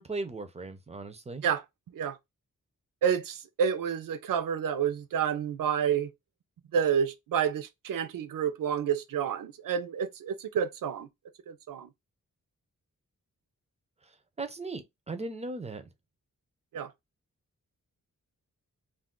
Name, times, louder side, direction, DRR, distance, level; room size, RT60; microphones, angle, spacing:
voice 1, 0.0-1.4 14.4-15.8, right 3 dB, 20° right, 0.3 m, -37 dB
voice 2, 3.0-6.1 6.7-11.1 11.5-11.9 16.7-16.9, right 8 dB, 80° right, 0.5 m, -29 dB
2.3 x 2.3 x 3.6 m
wide cardioid pair, 180°, 33 cm